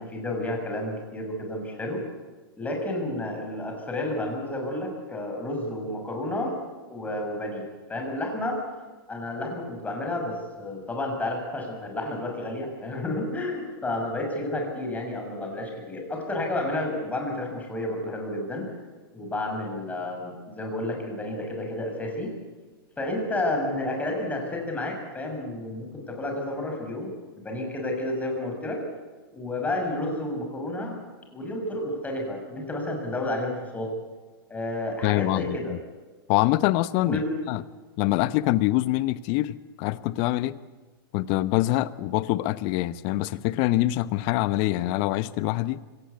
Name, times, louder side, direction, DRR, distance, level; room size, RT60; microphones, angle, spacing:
voice 1, 0.0-2.0 2.6-6.6 6.9-8.6 9.1-18.8 19.1-22.3 23.0-27.1 27.4-28.8 29.3-31.0 31.3-33.9 34.5-35.7 37.0-37.4, left 1 dB, 10° left, 6.6 m, -31 dB
voice 2, 35.0-35.8 36.3-37.6 38.0-40.6 41.1-45.8, left 17 dB, 45° left, 1.0 m, -25 dB
25.0 x 18.0 x 8.4 m
hypercardioid pair, 115°, 13 cm